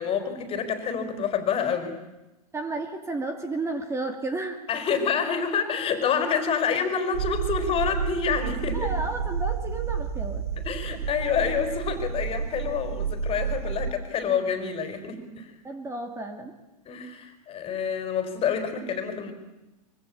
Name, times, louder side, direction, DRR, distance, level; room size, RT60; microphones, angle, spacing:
voice 1, 0.0-1.9 4.7-8.9 10.6-15.5 16.8-19.3, left 6 dB, 25° left, 9 dB, 4.6 m, -27 dB
voice 2, 2.5-4.7 8.7-10.4 15.6-16.6, right 2 dB, 15° right, 6 dB, 2.6 m, -32 dB
sound 1, 7.1-13.9, right 7 dB, 65° right, 1.8 m, -30 dB
26.0 x 24.0 x 8.6 m, 0.99 s
hypercardioid pair, 110°, 21 cm